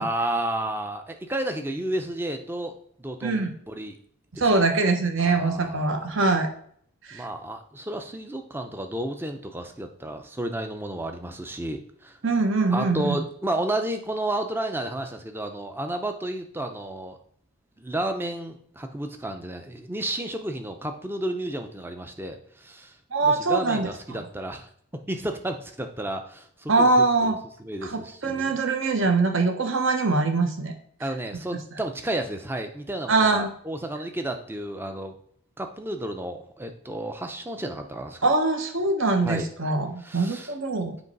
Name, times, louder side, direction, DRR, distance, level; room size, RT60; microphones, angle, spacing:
voice 1, 0.0-4.0 4.3-4.6 5.2-6.0 7.1-12.2 12.7-17.2 17.8-24.7 25.1-26.9 27.2-27.3 27.6-28.6 31.0-35.1 35.6-38.3 39.3-39.5 40.0-40.5, right 1 dB, 10° right, 6 dB, 0.5 m, -32 dB
voice 2, 3.2-3.5 4.4-6.5 7.0-7.3 12.2-13.2 23.1-23.9 26.7-27.4 27.8-30.7 33.1-33.5 38.2-41.0, right 3 dB, 55° right, 5 dB, 1.0 m, -23 dB
8.2 x 3.1 x 5.3 m, 0.63 s
head